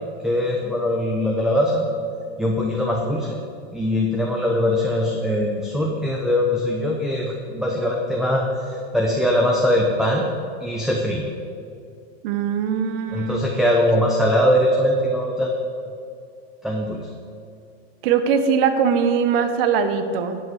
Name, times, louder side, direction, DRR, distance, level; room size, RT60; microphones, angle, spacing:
voice 1, 0.2-1.9 2.4-3.4 3.7-10.3 10.6-11.2 13.1-15.5 16.6-17.1, left 1 dB, ahead, 0 dB, 0.8 m, -21 dB
voice 2, 12.2-13.4 18.0-20.4, right 6 dB, 60° right, 9 dB, 1.0 m, -21 dB
11.0 x 5.7 x 7.8 m, 2.4 s
supercardioid pair, 135°, 33 cm